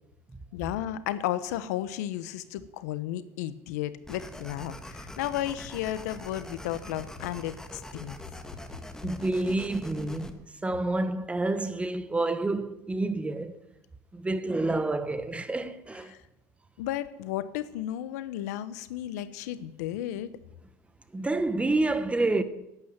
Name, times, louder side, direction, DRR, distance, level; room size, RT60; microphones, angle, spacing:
voice 1, 0.5-8.2 16.1-16.2 16.8-20.3, left 12 dB, 80° left, 1.0 m, -33 dB
sound 1, 4.0-10.3, equal, 5° left, 1.7 m, -43 dB
voice 2, 9.0-13.6 14.1-16.1 21.1-22.4, right 2 dB, 15° right, 1.3 m, -28 dB
12.0 x 9.2 x 9.5 m
supercardioid pair, 90°, 9 cm